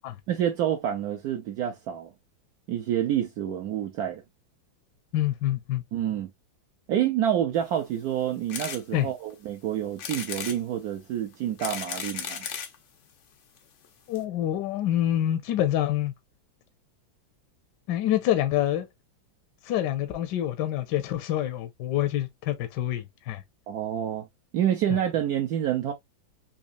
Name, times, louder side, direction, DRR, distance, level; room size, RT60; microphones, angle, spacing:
voice 1, 0.3-2.1 2.7-4.2 5.9-6.3 6.9-12.5 23.7-24.3 24.5-25.9, right 10 dB, 75° right, 0.8 m, -28 dB
voice 2, 5.1-5.8 8.9-9.1 14.1-16.1 17.9-18.9 19.6-23.4, left 12 dB, 75° left, 1.1 m, -26 dB
sound 1, 8.5-8.8 9.3-9.4 10.0-10.6 11.3-12.8 13.6-13.7 13.8-13.9 14.1-14.2, left 7 dB, 90° left, 0.6 m, -35 dB
4.0 x 2.7 x 2.4 m
omnidirectional pair, 2.2 m